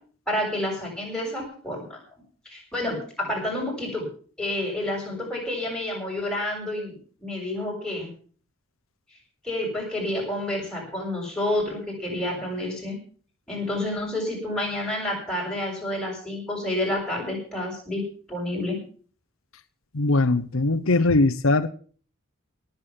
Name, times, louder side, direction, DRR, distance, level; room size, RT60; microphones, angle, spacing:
voice 1, 0.3-2.0 2.4-4.1 4.4-8.1 9.4-13.0 13.5-18.0 18.3-18.8, left 1 dB, 5° left, -2 dB, 7.7 m, -29 dB
voice 2, 19.9-21.7, left 2 dB, 80° left, 10 dB, 1.0 m, -20 dB
18.0 x 8.4 x 7.4 m, 0.43 s
head